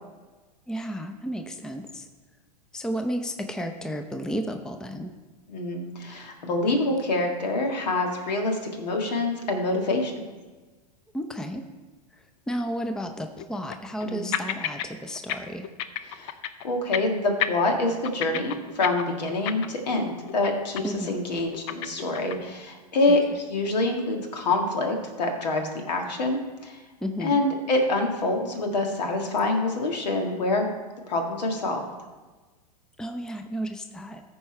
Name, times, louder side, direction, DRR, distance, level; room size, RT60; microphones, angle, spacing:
voice 1, 0.7-2.1 2.7-5.1 11.1-11.6 12.5-15.7 20.8-21.2 23.1-23.2 27.0-27.4 33.0-34.2, equal, 5° left, 6 dB, 0.5 m, -32 dB
voice 2, 5.5-10.3 14.0-14.3 16.1-16.3 16.6-26.8 27.2-30.7 31.1-31.8, left 2 dB, 80° left, 3 dB, 1.7 m, -26 dB
sound 1, 8.1-8.3 8.6-8.7 9.4-9.5 12.6-12.7 13.4-14.1 14.3-14.9 15.1-15.4 15.6-16.6 16.9-17.1 17.4-20.0 20.3-20.5 20.8-21.1 21.4-22.5, left 11 dB, 50° left, 0.6 m, -31 dB
14.0 x 4.7 x 4.4 m, 1.3 s
hypercardioid pair, 105°, 21 cm